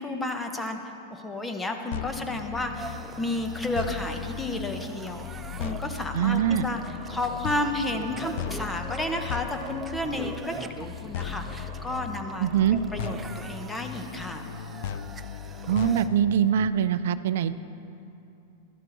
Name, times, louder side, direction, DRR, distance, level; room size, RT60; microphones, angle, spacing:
voice 1, 0.0-5.3 5.6-6.8 7.1-14.4, left 1 dB, 10° left, 5 dB, 1.0 m, -32 dB
sound 1, 1.9-16.7, left 8 dB, 70° left, 0.5 m, -37 dB
sound 2, 2.7-16.1, right 4 dB, 20° right, 0.5 m, -43 dB
voice 2, 6.1-6.6 12.4-12.8 15.7-17.5, right 9 dB, 75° right, 14 dB, 0.4 m, -23 dB
12.5 x 11.5 x 4.0 m, 2.8 s
hypercardioid pair, 120°, 0 cm